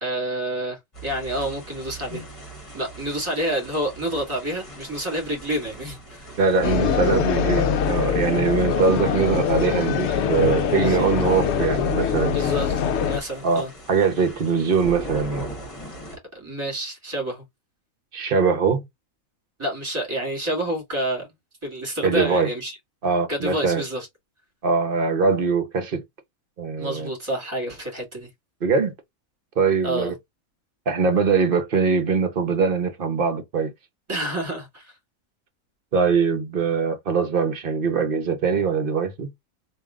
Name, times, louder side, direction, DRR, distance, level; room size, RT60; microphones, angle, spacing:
voice 1, 0.0-2.3 2.7-6.3 10.8-11.1 12.3-12.8 13.1-13.7 16.3-17.4 19.6-21.3 21.6-22.8 23.3-24.1 26.8-28.3 29.8-30.1 34.1-34.9, right 1 dB, 20° right, 2.1 m, -28 dB
sound 1, 0.9-16.2, right 1 dB, 25° left, 1.6 m, -40 dB
voice 2, 6.4-12.4 13.4-13.6 13.9-15.4 18.1-18.8 22.0-22.5 23.0-23.8 24.6-26.0 26.6-27.1 28.6-28.9 29.6-30.1 30.9-33.7 35.9-39.3, right 5 dB, 45° right, 0.9 m, -22 dB
sound 2, 6.6-13.2, left 7 dB, 65° left, 0.8 m, -23 dB
3.6 x 2.6 x 3.6 m
omnidirectional pair, 1.5 m